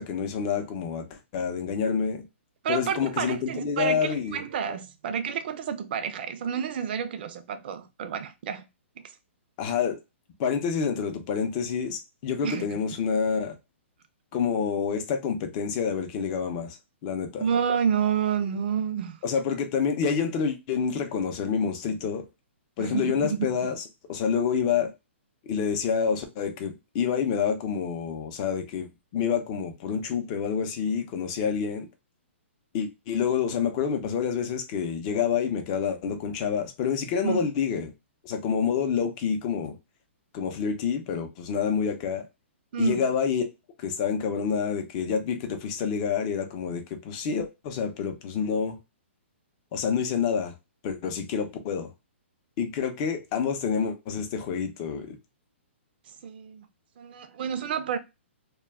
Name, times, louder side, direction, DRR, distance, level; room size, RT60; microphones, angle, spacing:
voice 1, 0.0-2.2 2.7-4.4 9.6-10.0 10.4-13.6 14.3-16.8 17.0-17.4 19.2-22.2 22.8-23.8 24.1-24.9 25.4-31.9 32.7-37.9 38.2-39.8 40.3-42.2 42.8-43.5 43.8-48.8 49.7-50.5 50.8-51.9 52.6-55.2, left 6 dB, 35° left, 0.6 m, -28 dB
voice 2, 2.6-8.7 12.4-12.6 17.4-19.2 22.8-23.5 37.2-37.5 42.7-43.0 56.2-56.7 57.0-58.0, right 7 dB, 50° right, 0.5 m, -29 dB
2.3 x 2.2 x 3.4 m
hypercardioid pair, 155°, 7 cm